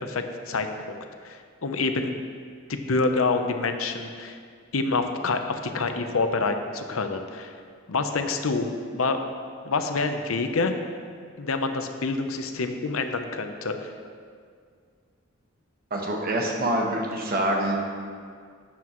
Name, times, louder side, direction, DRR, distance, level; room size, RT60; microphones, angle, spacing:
voice 1, 0.0-1.0 1.2-2.2 2.7-4.4 4.7-7.5 7.9-9.2 9.6-10.7 11.4-13.9, left 3 dB, 85° left, 7 dB, 0.8 m, -27 dB
voice 2, 15.9-17.8, right 1 dB, 50° right, 0 dB, 1.4 m, -25 dB
12.0 x 9.5 x 3.1 m, 2.1 s
head